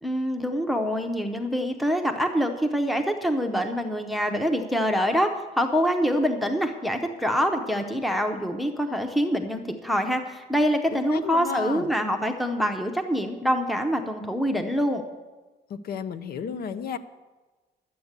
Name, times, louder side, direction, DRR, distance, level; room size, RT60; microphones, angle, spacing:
voice 1, 0.0-5.3 5.6-15.0, equal, ahead, 6 dB, 0.7 m, -25 dB
voice 2, 10.9-11.9 15.7-17.0, left 7 dB, 60° left, 12 dB, 0.7 m, -33 dB
12.0 x 8.2 x 8.1 m, 1.2 s
cardioid pair, 170°, 18 cm